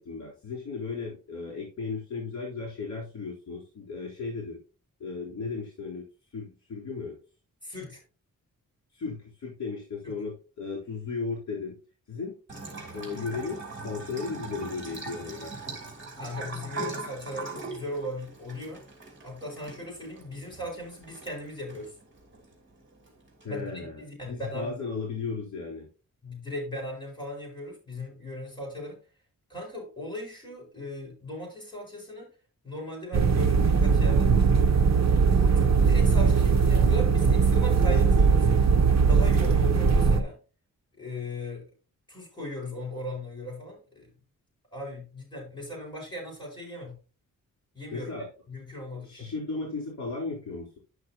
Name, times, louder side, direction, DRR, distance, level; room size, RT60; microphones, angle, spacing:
voice 1, 0.0-4.6 5.0-6.1 6.3-7.2 8.9-11.7 12.1-12.4 12.9-15.5 23.4-25.9 47.9-48.3 49.0-50.8, left 4 dB, 55° left, -4 dB, 3.8 m, -35 dB
voice 2, 7.6-8.0 10.0-10.2 16.2-18.8 19.2-21.9 23.5-24.7 26.2-29.0 29.5-32.3 32.6-34.3 35.3-38.5 39.0-40.4 41.0-41.7 42.1-44.1 44.7-47.0 47.7-48.1 48.5-49.3, left 1 dB, 15° left, -3 dB, 5.4 m, -38 dB
Bathtub (filling or washing) / Trickle dribble, 12.5-23.4, right 4 dB, 35° right, 3.1 m, -41 dB
sound 1, 33.1-40.2, right 5 dB, 50° right, 0.9 m, -20 dB
11.0 x 6.2 x 2.9 m, 0.35 s
wide cardioid pair, 125°, 34 cm